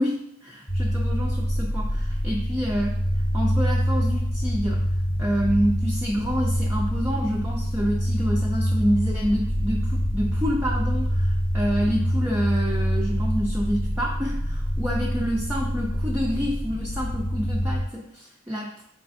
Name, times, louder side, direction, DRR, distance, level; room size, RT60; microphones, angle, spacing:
voice 1, 0.0-2.9 3.3-4.8 5.2-18.8, equal, 10° right, -3 dB, 0.3 m, -28 dB
sound 1, 0.7-17.8, equal, 30° left, 0.7 m, -25 dB
4.7 x 3.4 x 2.5 m, 0.71 s
head